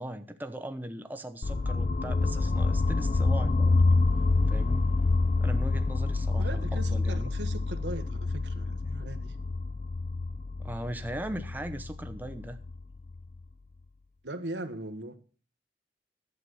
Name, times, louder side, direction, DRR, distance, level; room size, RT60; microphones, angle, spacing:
voice 1, 0.0-3.8 4.5-4.9 5.4-7.3 10.6-12.6, right 1 dB, 10° right, 0.8 m, -39 dB
sound 1, 1.4-13.4, left 3 dB, 40° left, 0.5 m, -27 dB
voice 2, 6.4-9.4 14.2-15.2, right 1 dB, 90° right, 1.3 m, -39 dB
11.5 x 8.0 x 6.3 m
head